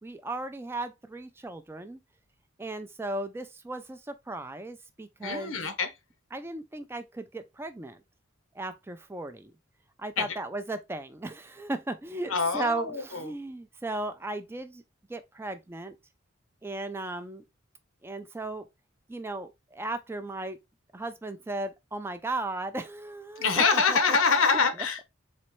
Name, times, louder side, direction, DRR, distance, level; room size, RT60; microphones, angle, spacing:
voice 1, 0.0-2.0 2.6-5.6 6.3-8.0 8.6-9.5 10.0-14.8 15.1-16.0 16.6-17.4 18.0-18.7 19.1-20.6 20.9-24.2 24.5-24.6, right 2 dB, 10° right, 0.4 m, -36 dB
voice 2, 5.2-5.9 10.2-10.3 12.3-13.3 23.4-25.0, left 5 dB, 85° left, 0.9 m, -25 dB
4.2 x 3.0 x 3.0 m
head